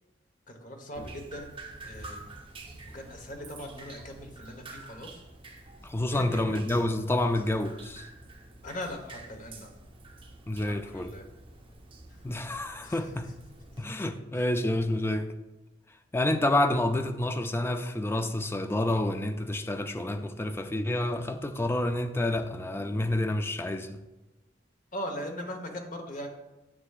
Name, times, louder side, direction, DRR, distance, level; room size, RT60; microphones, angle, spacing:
voice 1, 0.5-1.6 1.8-2.3 2.9-5.2 6.0-6.6 8.6-9.7 10.6-11.3 12.1-12.3 12.8-13.3 13.7-13.8 14.3-14.4 24.9-26.3, left 1 dB, 45° left, 1.1 m, -40 dB
Drip, 0.9-13.8, right 2 dB, 30° right, 0.9 m, -48 dB
voice 2, 5.8-8.1 10.5-11.1 12.2-13.3 13.8-15.3 16.1-24.0, left 1 dB, 15° left, 0.4 m, -28 dB
9.8 x 6.9 x 2.4 m
head